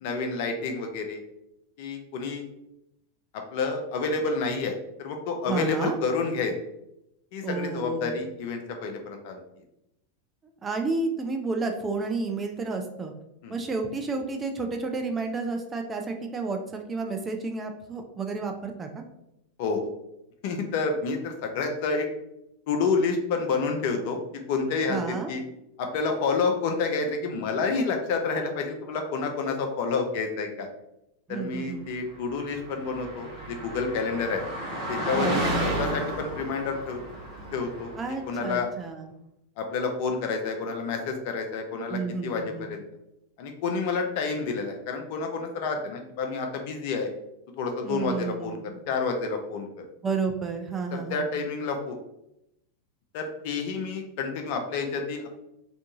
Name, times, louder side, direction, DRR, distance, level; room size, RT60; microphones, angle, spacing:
voice 1, 0.0-1.2 1.8-2.4 3.5-6.5 7.3-9.4 13.4-13.5 19.6-19.9 20.4-22.1 22.7-24.2 24.5-25.4 25.8-30.7 31.3-34.4 34.9-37.0 37.5-37.9 38.3-38.7 39.6-42.4 42.7-42.9 43.4-47.1 47.6-49.9 50.9-52.0 53.1-55.3, left 4 dB, 50° left, 4 dB, 0.4 m, -29 dB
voice 2, 5.5-6.0 7.4-8.2 10.6-13.1 13.5-19.0 24.9-25.3 31.3-31.9 35.1-35.6 38.0-39.1 41.9-42.7 47.8-48.6 50.0-51.3, right 4 dB, 20° right, 3 dB, 0.4 m, -31 dB
Car passing by, 32.3-38.2, right 1 dB, 45° right, 0.8 m, -32 dB
2.6 x 2.3 x 2.7 m, 0.84 s
figure-of-eight pair, 90°, 0 cm